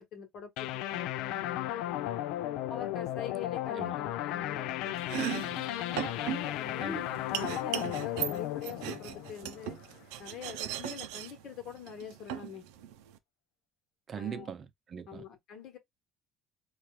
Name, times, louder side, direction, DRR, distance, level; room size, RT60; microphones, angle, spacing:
voice 1, 0.0-2.3 2.7-5.2 5.7-9.8 10.2-12.6 14.1-14.5 15.1-15.8, left 7 dB, 60° left, 1.2 m, -44 dB
sound 1, 0.6-9.9, left 13 dB, 80° left, 0.4 m, -35 dB
Domestic sounds home sounds, 4.9-13.2, right 11 dB, 90° right, 0.5 m, -38 dB
voice 2, 14.1-15.3, right 8 dB, 40° right, 0.5 m, -41 dB
4.3 x 2.4 x 3.0 m
cardioid pair, 110°, 0 cm